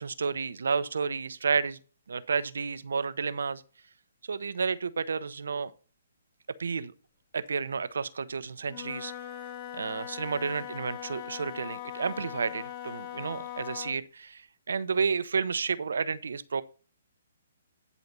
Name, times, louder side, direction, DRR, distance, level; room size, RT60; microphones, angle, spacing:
voice 1, 0.0-1.8 2.1-3.6 4.3-5.7 6.6-6.9 7.3-9.1 9.7-16.6, right 5 dB, 75° right, 0.7 m, -31 dB
Wind instrument woodwind instrument, 8.6-14.0, left 11 dB, 35° left, 0.6 m, -40 dB
11.0 x 4.2 x 5.3 m
hypercardioid pair, 145°, 0 cm